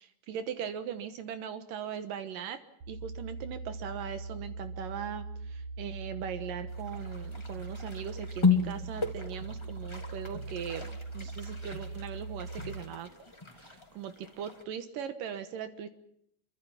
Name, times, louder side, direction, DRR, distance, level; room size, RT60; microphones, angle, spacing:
voice 1, 0.0-2.6 2.9-13.1 13.5-15.9, right 8 dB, 80° right, 10 dB, 2.9 m, -40 dB
sound 1, 2.8-12.8, right 3 dB, 60° right, 3.7 m, -41 dB
sound 2, 6.7-14.6, left 4 dB, 10° left, 2.7 m, -35 dB
28.0 x 24.5 x 5.8 m, 0.71 s
omnidirectional pair, 3.9 m